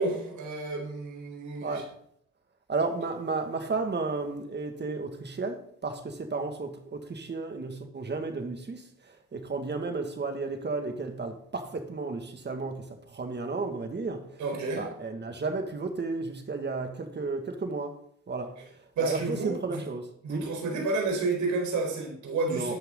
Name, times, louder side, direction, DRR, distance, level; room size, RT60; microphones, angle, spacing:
voice 1, 0.0-1.8 14.4-14.9 19.0-19.8 20.2-22.8, right 3 dB, 75° right, 4.6 m, -30 dB
voice 2, 1.6-1.9 2.7-14.3 14.7-18.0 18.3-18.5 19.0-20.5 22.5-22.8, right 3 dB, 35° right, 2.1 m, -33 dB
13.0 x 9.0 x 4.0 m
cardioid pair, 90°, 30 cm